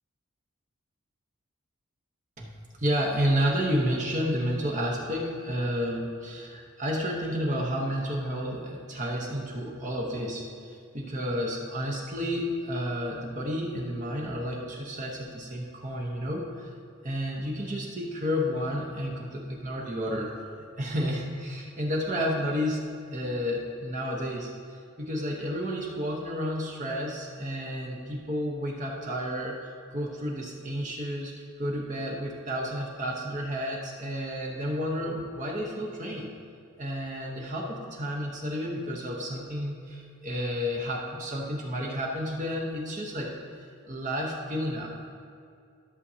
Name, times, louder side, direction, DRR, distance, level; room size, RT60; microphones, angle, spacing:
voice 1, 2.8-16.7 17.0-20.4 20.8-22.8 23.1-24.5 25.0-36.3 36.8-43.3 43.8-44.9, equal, 35° right, -2 dB, 1.0 m, -31 dB
14.0 x 6.8 x 2.8 m, 2.4 s
head